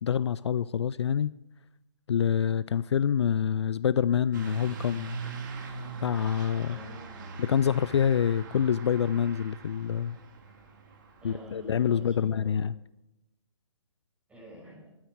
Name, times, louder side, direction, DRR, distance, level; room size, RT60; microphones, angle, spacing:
voice 1, 0.0-1.3 2.1-5.2 6.0-6.8 7.4-10.2 11.2-12.7, left 8 dB, 60° left, 0.4 m, -26 dB
Truck / Accelerating revving vroom, 4.3-12.3, right 4 dB, 40° right, 2.1 m, -42 dB
voice 2, 6.7-7.4 11.2-12.7 14.3-14.9, equal, 10° right, 6.1 m, -47 dB
12.5 x 9.4 x 8.0 m
hypercardioid pair, 150°, 16 cm